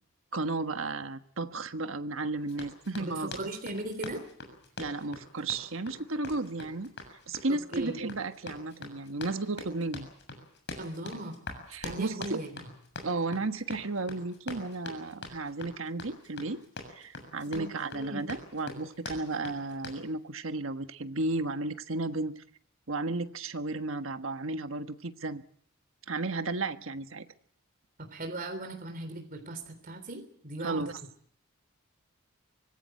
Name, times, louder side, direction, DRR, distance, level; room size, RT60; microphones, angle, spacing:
voice 1, 0.3-3.3 4.8-6.9 7.3-10.1 11.7-12.4 13.0-16.6 16.9-22.4 22.9-25.4 26.1-27.3 30.6-30.9, right 2 dB, 70° right, 8 dB, 1.4 m, -33 dB
Run, 2.5-20.0, left 2 dB, 60° left, 7.0 m, -44 dB
voice 2, 3.0-4.3 7.5-8.0 10.8-11.4 11.8-12.7 17.4-18.3 28.0-30.9, right 2 dB, 45° right, 5 dB, 3.5 m, -38 dB
25.0 x 19.0 x 7.7 m, 0.63 s
head